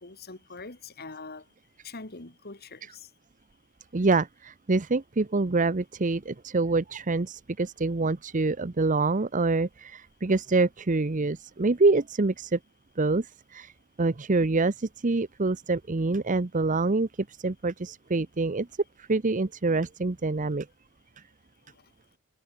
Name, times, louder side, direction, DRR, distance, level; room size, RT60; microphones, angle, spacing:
voice 1, 0.0-1.4 1.8-3.1, left 3 dB, 45° left, 2.1 m, -43 dB
voice 2, 3.9-12.6 13.0-13.3 13.5-13.7 14.0-17.1 17.4-18.7 19.1-20.7, right 3 dB, 35° right, 0.7 m, -26 dB
head